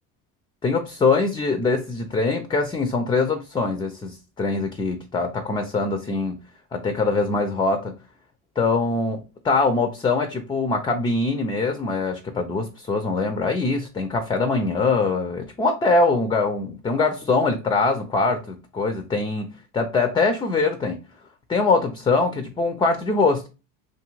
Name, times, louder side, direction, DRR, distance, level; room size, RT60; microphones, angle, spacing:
voice 1, 0.6-6.4 6.7-7.9 8.6-21.0 21.5-23.5, left 3 dB, 15° left, 0.3 m, -23 dB
2.6 x 2.5 x 2.9 m
supercardioid pair, 80°, 39 cm